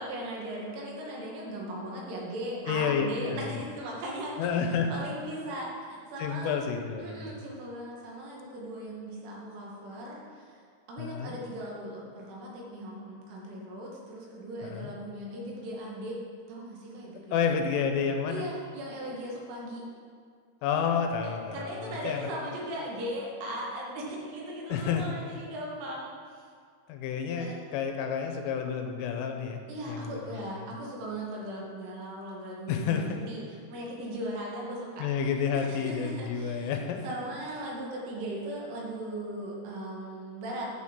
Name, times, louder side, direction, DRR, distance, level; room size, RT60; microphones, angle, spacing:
voice 1, 0.0-6.7 7.0-16.2 16.5-17.6 18.3-19.8 21.2-26.4 27.3-27.8 29.7-36.7 37.0-40.7, right 1 dB, 75° right, -3 dB, 4.3 m, -38 dB
voice 2, 2.7-3.6 4.4-5.0 6.2-7.4 11.0-11.4 14.6-14.9 17.3-18.5 20.6-22.3 24.7-25.1 26.9-29.6 29.9-30.4 32.7-33.2 35.0-37.0, left 6 dB, 80° left, 4 dB, 3.4 m, -30 dB
10.5 x 6.2 x 7.4 m, 2.1 s
omnidirectional pair, 5.8 m